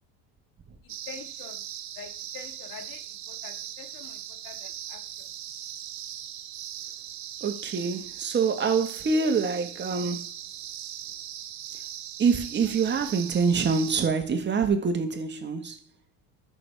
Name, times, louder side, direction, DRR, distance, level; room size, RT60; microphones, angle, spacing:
voice 1, 0.8-1.6 2.0-5.3, left 6 dB, 55° left, 1.9 m, -46 dB
sound 1, 0.9-14.1, right 11 dB, 40° right, 1.0 m, -39 dB
voice 2, 7.4-10.3 12.2-15.8, right 5 dB, 25° right, 1.5 m, -25 dB
13.0 x 6.2 x 3.5 m
supercardioid pair, 110°, 42 cm